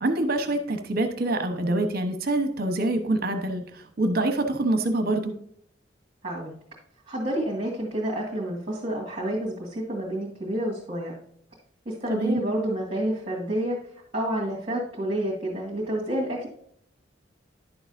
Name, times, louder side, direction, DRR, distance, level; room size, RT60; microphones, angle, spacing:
voice 1, 0.0-5.3 12.1-12.5, right 2 dB, 50° right, 7 dB, 1.0 m, -25 dB
voice 2, 6.2-6.6 7.1-11.1 11.9-13.8 14.1-16.5, right 1 dB, 30° right, -5 dB, 2.0 m, -29 dB
11.0 x 6.9 x 2.6 m, 0.66 s
head